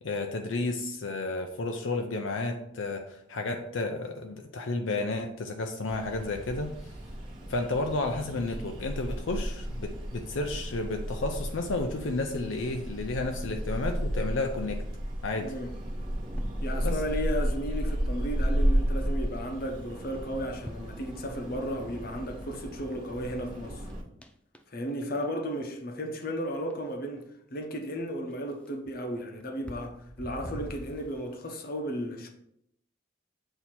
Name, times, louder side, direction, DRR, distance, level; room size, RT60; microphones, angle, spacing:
voice 1, 0.0-6.7 7.5-14.8 15.2-15.5 16.8-17.0, left 2 dB, 80° left, 4 dB, 0.6 m, -32 dB
sound 1, 5.9-24.0, equal, 25° right, 1.4 m, -33 dB
voice 2, 15.4-15.7 16.6-23.8 24.7-27.2 27.5-32.3, equal, 50° left, 3 dB, 0.8 m, -34 dB
sound 2, 15.5-16.7 18.3-18.4 18.7-19.3 19.6-20.0 20.5-21.8 22.2-22.3 22.9-23.0 23.3-23.6 23.9-25.0 25.2-25.3 25.6-25.7 25.9-26.4 26.7-26.8 27.2-27.3 27.7-27.8 28.3-31.3, equal, 5° left, 0.3 m, -46 dB
7.8 x 2.8 x 4.3 m, 0.74 s
head